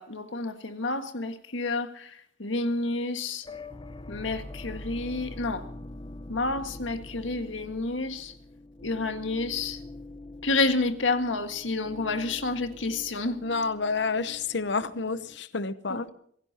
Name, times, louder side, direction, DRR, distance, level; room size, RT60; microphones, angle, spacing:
voice 1, 0.0-3.5 4.1-5.7 6.3-8.3 8.8-9.8 10.4-13.4 15.9-16.1, left 3 dB, 80° left, 1.8 m, -29 dB
sound 1, 3.4-15.4, left 2 dB, 25° left, 0.7 m, -44 dB
voice 2, 13.4-16.0, left 4 dB, 65° left, 0.9 m, -29 dB
26.0 x 17.5 x 2.9 m
head